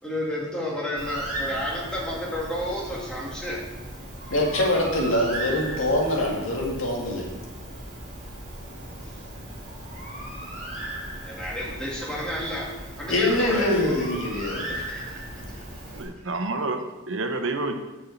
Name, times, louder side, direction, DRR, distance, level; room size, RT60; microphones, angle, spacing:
voice 1, 0.0-3.6 9.0-9.3 11.2-12.7 13.0-13.7 14.5-15.8, left 1 dB, 5° left, -4 dB, 1.8 m, -31 dB
Bird, 1.0-16.0, right 1 dB, 35° right, 2.8 m, -37 dB
voice 2, 4.3-7.3 13.1-14.7, left 1 dB, 90° left, -1 dB, 2.1 m, -24 dB
voice 3, 15.9-17.7, right 2 dB, 75° right, 6 dB, 0.9 m, -29 dB
7.1 x 5.5 x 7.1 m, 1.1 s
head